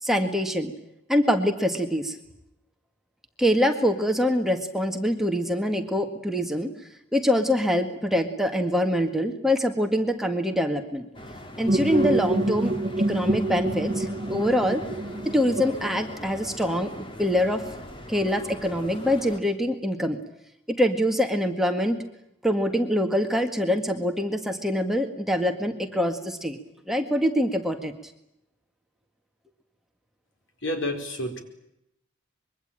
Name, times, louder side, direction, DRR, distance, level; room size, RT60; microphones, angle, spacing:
voice 1, 0.0-0.7 1.1-2.2 3.4-6.7 7.1-11.1 11.6-14.8 15.2-16.9 17.2-17.6 18.1-20.2 20.7-22.0 22.4-26.6 26.9-28.1, equal, ahead, 4 dB, 1.8 m, -24 dB
sound 1, 11.1-19.4, equal, 25° left, 2.3 m, -41 dB
sound 2, 11.7-16.5, right 2 dB, 25° right, 1.6 m, -27 dB
voice 2, 30.6-31.4, left 1 dB, 80° left, 6 dB, 4.9 m, -29 dB
25.0 x 23.0 x 9.0 m, 0.82 s
head